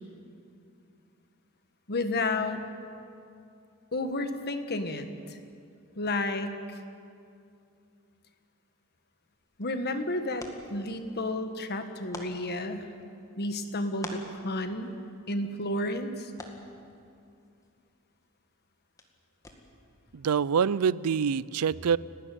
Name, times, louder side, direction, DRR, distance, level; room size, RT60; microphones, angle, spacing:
voice 1, 1.9-2.6 3.9-5.4 5.9-6.6 9.6-12.9 13.4-14.9 15.3-16.3, left 2 dB, 45° left, 8 dB, 1.5 m, -31 dB
sound 1, 9.2-20.0, left 1 dB, 15° left, 2.1 m, -50 dB
voice 2, 20.1-22.0, right 7 dB, 80° right, 20 dB, 0.5 m, -25 dB
29.5 x 12.5 x 9.3 m, 2.5 s
head